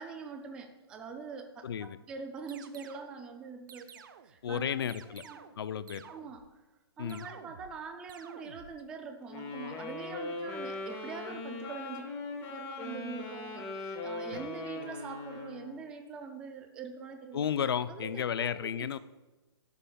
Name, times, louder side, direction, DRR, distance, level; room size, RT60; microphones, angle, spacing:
voice 1, 0.0-4.8 5.2-5.4 6.0-6.6 7.0-12.1 12.5-17.5 17.9-18.5 18.8-18.9, right 5 dB, 5° right, 5 dB, 0.4 m, -44 dB
voice 2, 1.6-2.0 4.4-5.2 5.6-6.0 7.0-7.3 14.3-14.4 17.3-19.0, left 8 dB, 60° left, 14 dB, 0.5 m, -33 dB
sound 1, 2.5-3.2 3.7-4.4 4.9-5.6 5.9-6.5 7.1-7.8 8.1-8.8, right 8 dB, 45° right, 0.6 m, -52 dB
Wind instrument woodwind instrument, 9.3-15.8, left 3 dB, 15° left, 1.2 m, -40 dB
12.5 x 11.5 x 2.3 m, 1.1 s
hypercardioid pair, 170°, 14 cm